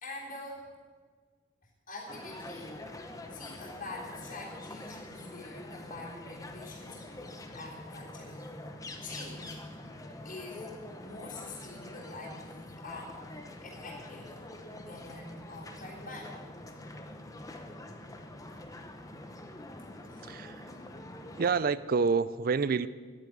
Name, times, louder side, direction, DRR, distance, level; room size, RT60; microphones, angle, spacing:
voice 1, 0.0-0.7 1.9-2.8 3.3-8.5 9.0-9.6 10.2-10.7 11.0-14.4 14.7-16.4 20.1-20.3, left 2 dB, 45° left, -5 dB, 3.3 m, -45 dB
sound 1, 2.1-21.6, left 1 dB, 15° left, 0.8 m, -45 dB
voice 2, 20.2-20.7 21.4-22.9, right 5 dB, 45° right, 16 dB, 0.4 m, -28 dB
10.5 x 8.6 x 9.3 m, 1.5 s
head